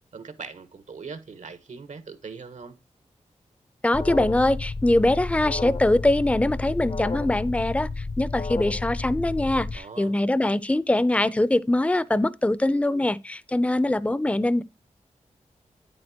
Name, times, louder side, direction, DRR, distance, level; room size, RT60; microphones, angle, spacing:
voice 1, 0.1-2.7 9.7-10.2, right 5 dB, 70° right, 1.3 m, -41 dB
voice 2, 3.8-14.6, left 1 dB, 10° left, 0.6 m, -23 dB
Alarm, 3.9-9.8, left 3 dB, 45° left, 0.8 m, -31 dB
9.4 x 8.7 x 2.9 m
cardioid pair, 40°, 13 cm